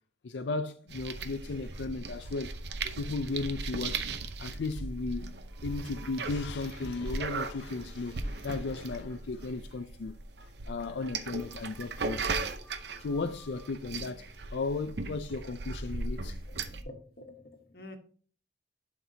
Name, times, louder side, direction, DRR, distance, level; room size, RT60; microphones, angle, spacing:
voice 1, 0.2-2.6 2.9-4.1 4.4-10.2 10.7-12.5 12.9-16.4, left 3 dB, 80° left, 0.5 m, -35 dB
sound 1, 0.9-16.8, right 3 dB, 75° right, 0.7 m, -38 dB
sound 2, 3.8-4.3 5.1-8.4 8.7-9.0 9.4-9.8 10.0-10.5 10.7-13.7, right 1 dB, 5° left, 1.7 m, -60 dB
voice 2, 16.5-18.0, left 1 dB, 60° left, 1.2 m, -48 dB
11.5 x 5.9 x 2.8 m
head